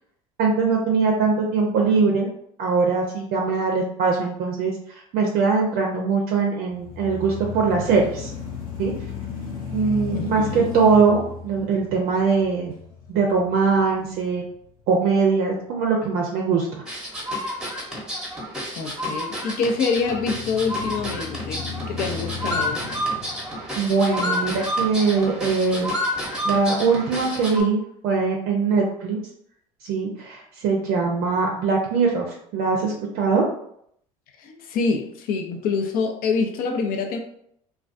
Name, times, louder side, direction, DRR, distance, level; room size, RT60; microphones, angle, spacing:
voice 1, 0.4-2.3 2.6-8.3 8.8-8.9 9.7-12.7 13.1-14.4 14.9-16.7 23.7-26.0 26.4-29.2 29.8-32.3 32.5-33.5, right 4 dB, 55° right, 0 dB, 0.5 m, -21 dB
sound 1, 6.7-14.8 15.3-15.4 19.9-24.4, left 6 dB, 80° left, 0.8 m, -35 dB
voice 2, 10.1-10.7 18.7-22.8 34.4-37.2, left 4 dB, 55° left, 5 dB, 0.5 m, -26 dB
sound 2, 16.9-27.6, equal, 5° right, 0.8 m, -29 dB
2.2 x 2.2 x 2.5 m, 0.70 s
hypercardioid pair, 70°, 18 cm